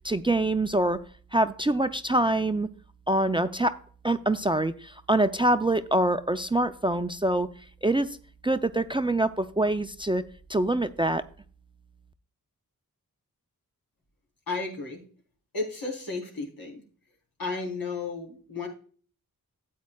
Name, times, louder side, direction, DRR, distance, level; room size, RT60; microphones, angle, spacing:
voice 1, 0.0-1.0 1.3-2.7 3.1-3.8 4.0-7.5 7.8-8.2 8.4-10.2 10.5-11.2, right 1 dB, 15° right, 10 dB, 0.4 m, -25 dB
voice 2, 14.5-15.0 15.5-16.8 17.4-18.7, left 3 dB, 80° left, -1 dB, 3.7 m, -33 dB
13.0 x 8.3 x 2.3 m, 0.43 s
wide cardioid pair, 95°, 35 cm